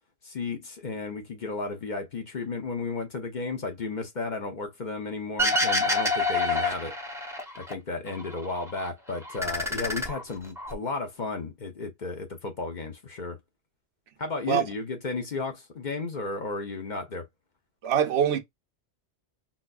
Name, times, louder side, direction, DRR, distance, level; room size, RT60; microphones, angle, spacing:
voice 1, 0.2-6.9 7.6-13.4 14.2-17.3, left 3 dB, 45° left, 0.8 m, -33 dB
sound 1, 5.4-7.7 8.1-8.9 9.2-10.7, left 2 dB, 5° right, 0.6 m, -27 dB
voice 2, 17.8-18.4, right 9 dB, 70° right, 0.9 m, -23 dB
3.9 x 2.6 x 2.3 m
omnidirectional pair, 1.1 m